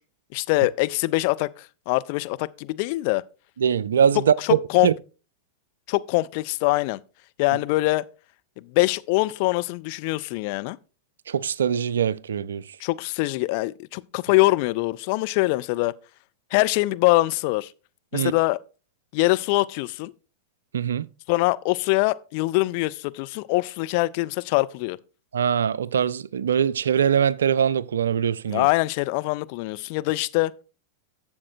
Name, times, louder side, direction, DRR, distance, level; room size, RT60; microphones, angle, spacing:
voice 1, 0.3-3.2 4.4-4.9 5.9-7.0 7.4-8.0 8.6-10.8 12.8-15.9 16.5-17.7 18.1-18.6 19.1-20.1 21.3-25.0 28.5-30.5, left 21 dB, 45° left, 0.4 m, -23 dB
voice 2, 3.6-4.9 11.3-12.6 18.1-18.3 20.7-21.1 25.3-28.7, right 8 dB, 65° right, 0.4 m, -22 dB
12.5 x 7.2 x 2.5 m
figure-of-eight pair, 90°, 0 cm